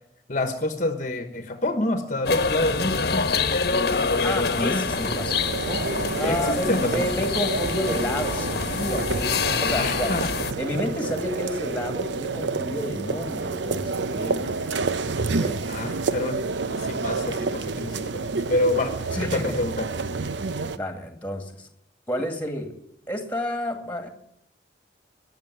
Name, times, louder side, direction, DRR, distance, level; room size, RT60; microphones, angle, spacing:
voice 1, 0.3-3.3 4.3-4.8 6.2-7.1 9.8-10.2 10.7-10.8 15.7-19.9, left 1 dB, 40° left, 8 dB, 1.3 m, -27 dB
sound 1, 2.3-10.5, left 4 dB, 60° left, 1.2 m, -26 dB
voice 2, 4.2-5.9 6.1-10.1 10.6-14.8 15.1-15.7 19.1-19.5 20.8-21.7 22.1-22.7 23.1-24.1, left 1 dB, 10° left, 6 dB, 2.2 m, -31 dB
sound 2, 4.7-20.8, right 3 dB, 80° right, 0.7 m, -29 dB
20.0 x 7.1 x 9.5 m, 0.75 s
head